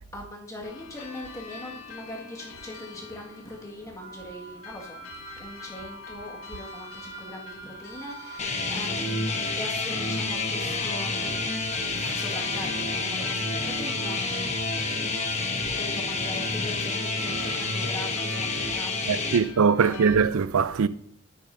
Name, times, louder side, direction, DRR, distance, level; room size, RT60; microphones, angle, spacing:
voice 1, 0.1-5.1 5.4-11.4 12.1-20.2, left 1 dB, 15° left, 1.7 m, -41 dB
sound 1, 0.6-20.2, left 5 dB, 90° left, 1.6 m, -45 dB
sound 2, 4.0-19.1, right 5 dB, 70° right, 2.0 m, -45 dB
sound 3, 8.4-19.4, left 3 dB, 30° left, 1.0 m, -29 dB
voice 2, 19.1-20.9, right 6 dB, 85° right, 0.4 m, -22 dB
10.0 x 9.8 x 2.7 m
head